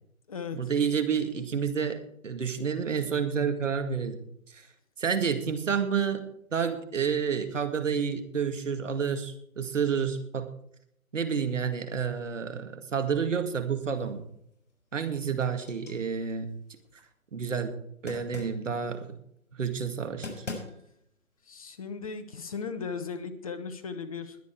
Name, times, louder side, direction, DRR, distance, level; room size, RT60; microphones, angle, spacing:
voice 1, 0.5-4.2 4.5-4.6 5.0-6.2 6.5-10.5 11.1-14.3 14.9-16.5 17.3-17.8 18.0-19.1 19.6-20.4, right 6 dB, 60° right, 7 dB, 2.1 m, -29 dB
sound 1, 13.8-14.4 14.8-17.0 18.1-18.7 19.9-20.0 20.2-21.0, left 3 dB, 55° left, 6.1 m, -43 dB
voice 2, 21.5-24.4, left 5 dB, 25° left, 10 dB, 0.9 m, -37 dB
21.0 x 8.3 x 4.7 m, 0.72 s
figure-of-eight pair, 145°, 43 cm